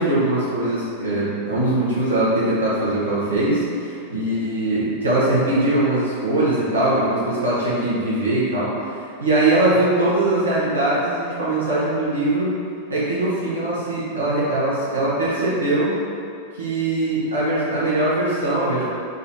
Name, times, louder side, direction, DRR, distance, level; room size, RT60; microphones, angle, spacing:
voice 1, 0.0-8.7 9.2-12.5 12.9-15.9 16.6-18.8, right 2 dB, 75° right, -8 dB, 1.2 m, -21 dB
3.9 x 2.7 x 4.4 m, 2.4 s
figure-of-eight pair, 90°, 0 cm